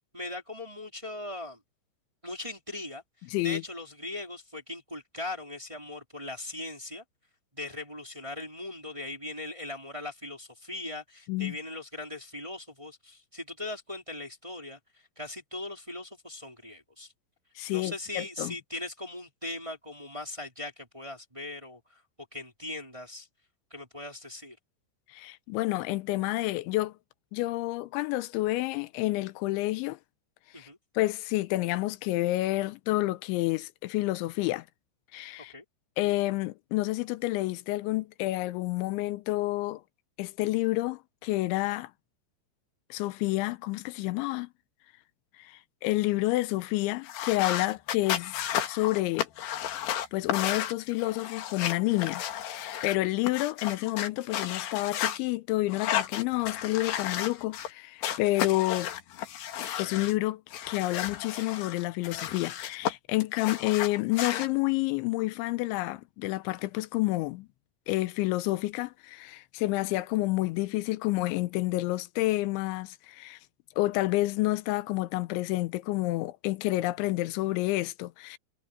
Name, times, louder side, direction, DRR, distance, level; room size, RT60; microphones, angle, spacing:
voice 1, 0.1-1.6 2.2-7.0 7.5-14.8 15.2-17.1 17.7-22.0 22.3-23.3 23.7-24.6 30.5-30.8 35.5-35.6, left 2 dB, 10° right, 2.9 m, -39 dB
voice 2, 3.3-3.6 11.3-11.6 17.6-18.5 25.1-26.9 27.3-30.0 30.6-30.7 31.0-34.7 35.1-35.5 36.0-39.8 40.2-41.9 42.9-44.5 45.4-49.3 49.6-49.8 50.1-58.9 59.8-60.4 60.7-67.5 67.9-73.4 73.8-78.4, left 19 dB, 90° left, 3.2 m, -29 dB
sound 1, 47.0-55.2 55.7-57.7 58.0-60.1 60.5-62.9 63.2-64.5, left 11 dB, 70° left, 3.7 m, -33 dB
omnidirectional pair, 5.2 m